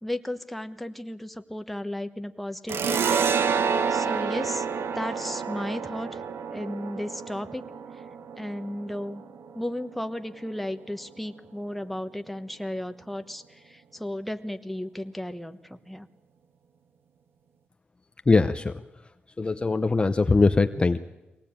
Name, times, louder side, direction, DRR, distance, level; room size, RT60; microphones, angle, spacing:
voice 1, 0.0-3.0 3.9-4.7 4.9-6.2 6.5-7.6 8.4-9.2 9.5-16.1, left 1 dB, 5° left, 8 dB, 1.1 m, -34 dB
sound 1, 2.7-9.9, right 6 dB, 80° right, 1.0 m, -29 dB
voice 2, 18.3-18.8 19.4-21.0, left 3 dB, 25° left, 9 dB, 0.7 m, -21 dB
22.5 x 18.0 x 8.7 m, 1.0 s
cardioid pair, 95°, 4 cm